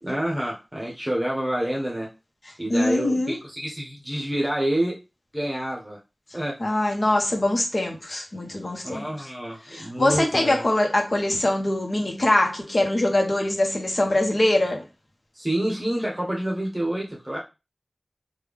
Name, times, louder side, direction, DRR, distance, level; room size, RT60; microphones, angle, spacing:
voice 1, 0.0-2.1 2.6-5.0 5.3-6.0 6.3-6.6 8.8-10.6 15.3-17.4, right 1 dB, 15° right, 0.9 m, -28 dB
voice 2, 2.7-3.4 6.6-9.1 9.7-14.8, left 1 dB, 55° left, 0.9 m, -23 dB
3.3 x 2.3 x 3.5 m
wide cardioid pair, 60°, 0 cm